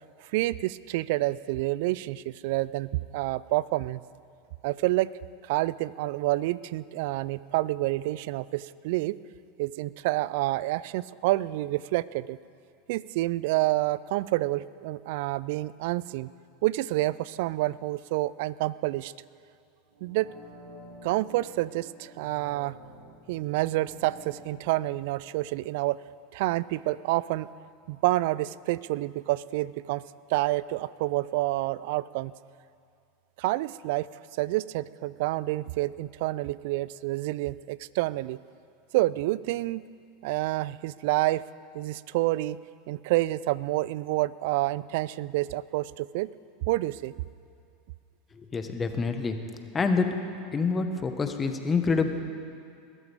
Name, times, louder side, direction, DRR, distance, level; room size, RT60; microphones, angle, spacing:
voice 1, 0.3-4.0 4.6-5.1 5.5-9.2 9.6-12.4 12.9-16.3 16.6-19.1 20.0-20.3 21.0-22.8 23.3-26.0 26.3-27.5 27.9-30.0 30.3-32.3 33.4-34.1 34.4-38.4 38.9-39.8 40.2-41.4 41.7-42.6 42.9-46.3 46.7-47.1, right 18 dB, 65° right, 19 dB, 0.3 m, -28 dB
sound 1, 19.9-26.7 27.1-27.2, equal, 80° right, 4.1 m, -51 dB
voice 2, 48.4-49.4 49.7-50.1 50.5-52.1, left 4 dB, 25° left, 6 dB, 1.4 m, -26 dB
21.0 x 13.5 x 3.6 m, 2.4 s
hypercardioid pair, 85°, 0 cm